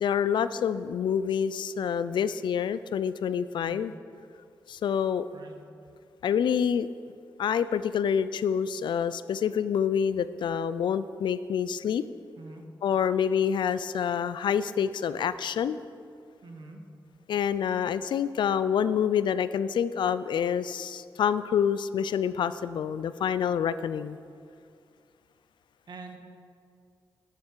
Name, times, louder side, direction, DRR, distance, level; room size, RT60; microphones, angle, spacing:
voice 1, 0.0-3.9 4.7-5.3 6.2-6.9 7.4-12.1 12.8-15.8 17.3-24.2, left 8 dB, 75° left, 14 dB, 0.4 m, -27 dB
voice 2, 12.4-12.7 16.4-16.8 25.9-26.2, right 3 dB, 70° right, 3 dB, 1.6 m, -45 dB
10.5 x 10.5 x 4.6 m, 2.3 s
cardioid pair, 50°, 8 cm